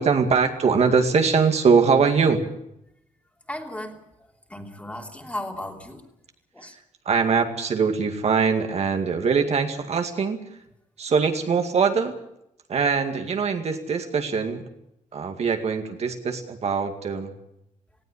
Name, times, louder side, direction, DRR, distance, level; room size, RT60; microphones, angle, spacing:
voice 1, 0.0-2.4 7.1-10.4 11.0-12.2 12.7-14.6 15.1-17.3, right 5 dB, 50° right, 5 dB, 2.2 m, -22 dB
voice 2, 3.5-4.0 4.5-6.1 6.5-6.8, left 1 dB, 10° left, 2 dB, 3.1 m, -35 dB
19.0 x 16.5 x 9.8 m, 0.79 s
cardioid pair, 125°, 14 cm